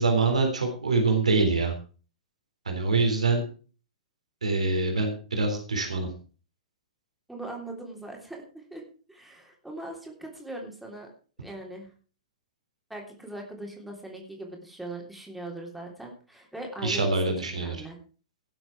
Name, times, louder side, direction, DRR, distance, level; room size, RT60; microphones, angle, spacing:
voice 1, 0.0-1.7 2.7-3.4 4.4-6.1 16.8-17.8, right 3 dB, 70° right, 3 dB, 3.6 m, -25 dB
voice 2, 7.3-8.4 8.7-8.8 9.1-11.1 11.4-11.9 12.9-17.1 17.5-18.0, right 1 dB, ahead, 0 dB, 3.4 m, -40 dB
18.0 x 7.9 x 4.8 m, 0.39 s
figure-of-eight pair, 110°, 4 cm